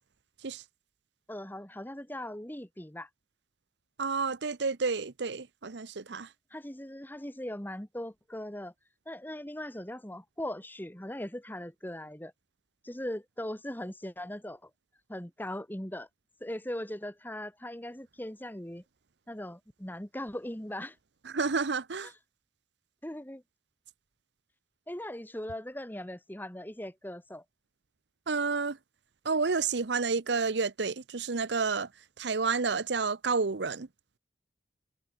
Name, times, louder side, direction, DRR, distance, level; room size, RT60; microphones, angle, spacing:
voice 1, 1.3-3.1 6.1-6.2 6.5-8.7 9.1-12.3 12.8-14.7 15.1-16.1 16.4-18.8 19.3-21.0 22.0-22.1 23.0-23.4 24.9-27.4, left 1 dB, 10° left, 1.9 m, -39 dB
voice 2, 4.0-6.3 21.3-22.1 28.3-28.8 29.2-31.9 32.2-33.9, right 4 dB, 75° right, 0.8 m, -30 dB
head